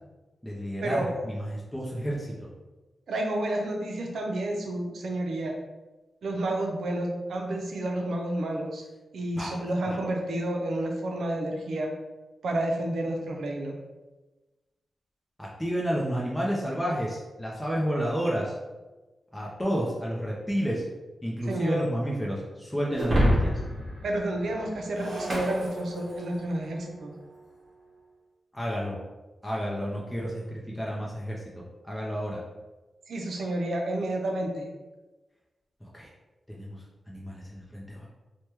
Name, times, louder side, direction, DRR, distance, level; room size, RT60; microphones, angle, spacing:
voice 1, 0.4-2.5 9.3-9.5 9.9-10.0 15.4-18.5 19.3-20.8 21.2-23.5 28.5-29.0 29.4-32.4 35.9-36.1 36.5-38.1, equal, 10° left, -4 dB, 0.5 m, -31 dB
voice 2, 3.1-5.6 6.2-8.8 9.1-11.9 12.4-13.8 21.5-21.8 24.0-27.1 33.1-34.7, right 1 dB, 80° right, 1 dB, 0.5 m, -30 dB
Shatter, 23.0-26.4, equal, 50° right, 0.9 m, -28 dB
3.2 x 2.2 x 2.9 m, 1.2 s
cardioid pair, 75°, 0 cm